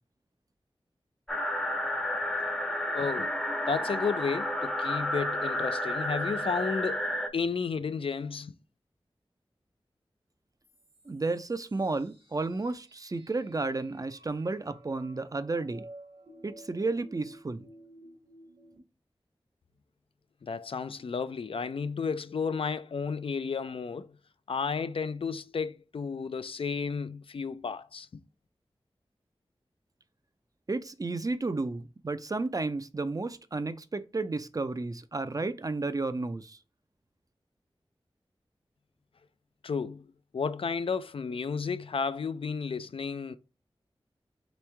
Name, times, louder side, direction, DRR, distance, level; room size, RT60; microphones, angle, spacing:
sound 1, 1.3-7.3, left 1 dB, 5° left, 0.6 m, -31 dB
voice 1, 2.9-3.3 3.7-7.0 7.3-8.5 20.4-24.1 24.5-28.2 39.6-43.4, left 5 dB, 70° left, 0.4 m, -32 dB
sound 2, 10.6-18.8, right 1 dB, 65° right, 1.2 m, -54 dB
voice 2, 11.1-15.9 16.4-17.7 30.7-36.6, right 3 dB, 35° right, 0.4 m, -32 dB
3.5 x 3.1 x 3.3 m
cardioid pair, 40°, 10 cm